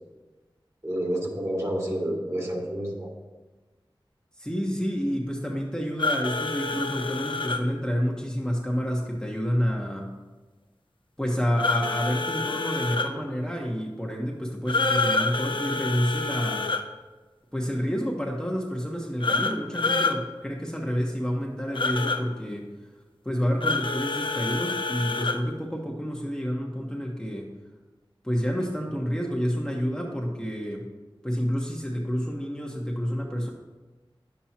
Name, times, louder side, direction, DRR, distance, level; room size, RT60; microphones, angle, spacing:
voice 1, 0.8-3.1, right 1 dB, 35° right, -2 dB, 2.1 m, -29 dB
voice 2, 4.4-10.1 11.2-16.7 17.5-22.7 23.2-27.5 28.2-30.9 31.2-33.5, equal, 10° left, -2 dB, 1.2 m, -29 dB
sound 1, 6.0-7.6 11.6-13.1 14.7-16.8 19.2-20.2 21.7-22.2 23.6-25.4, left 3 dB, 65° left, 0.6 m, -27 dB
10.0 x 7.3 x 2.9 m, 1.2 s
wide cardioid pair, 45°, 9 cm